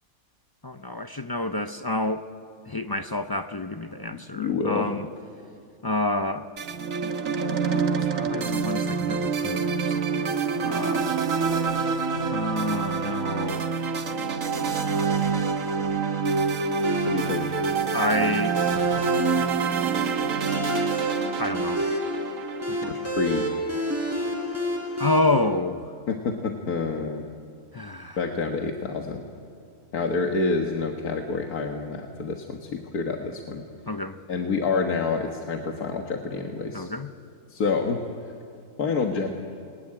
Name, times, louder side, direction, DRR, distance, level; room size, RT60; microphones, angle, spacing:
voice 1, 0.6-2.3 2.7-5.1 5.8-6.5 7.6-10.3 10.6-11.1 12.3-13.7 14.7-15.3 17.2-17.3 17.9-18.6 21.4-21.8 22.7-23.1 25.0-25.9 27.7-28.2 33.9-34.2 36.7-37.1, left 2 dB, 35° left, 8 dB, 0.3 m, -29 dB
voice 2, 4.1-4.9 17.1-17.6 22.8-23.5 26.1-27.2 28.2-29.2 29.9-33.6 34.3-36.9 37.5-38.0 38.8-39.3, left 4 dB, 80° left, 2 dB, 1.9 m, -28 dB
sound 1, 6.6-23.9, right 5 dB, 60° right, 1.6 m, -26 dB
sound 2, 16.8-25.2, equal, 10° right, 5.2 m, -30 dB
27.5 x 21.5 x 9.9 m, 2.4 s
omnidirectional pair, 1.6 m